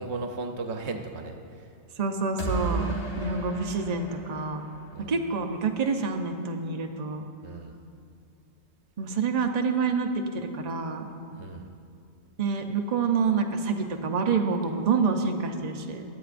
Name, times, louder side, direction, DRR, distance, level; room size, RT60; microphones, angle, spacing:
voice 1, 0.0-1.7 4.9-5.2 7.4-7.7 11.3-11.7, right 3 dB, 70° right, 4 dB, 1.1 m, -36 dB
voice 2, 2.0-4.7 5.1-7.2 9.0-11.1 12.4-16.0, right 4 dB, 40° right, 4 dB, 0.7 m, -27 dB
sound 1, 2.4-5.3, right 4 dB, 30° left, 2.0 m, -33 dB
22.0 x 9.5 x 2.5 m, 2.4 s
omnidirectional pair, 1.2 m